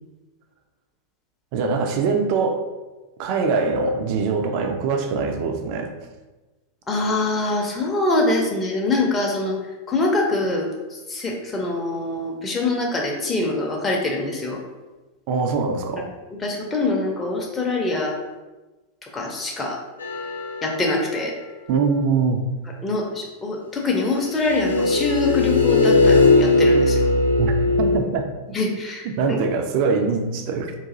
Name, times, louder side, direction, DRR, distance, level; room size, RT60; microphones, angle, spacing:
voice 1, 1.5-2.6 3.2-5.9 15.3-16.1 21.7-22.4 27.4-27.5 27.8-28.3 29.0-30.7, right 4 dB, 45° right, 5 dB, 0.4 m, -22 dB
voice 2, 6.9-9.6 9.9-14.6 16.4-18.2 19.0-19.8 20.6-21.3 22.8-27.1 28.5-29.1, left 2 dB, 15° left, -1 dB, 0.5 m, -24 dB
sound 1, 20.0-21.0 24.3-28.0, left 3 dB, 80° left, 0.4 m, -18 dB
3.9 x 2.5 x 2.5 m, 1.2 s
figure-of-eight pair, 90°, 0 cm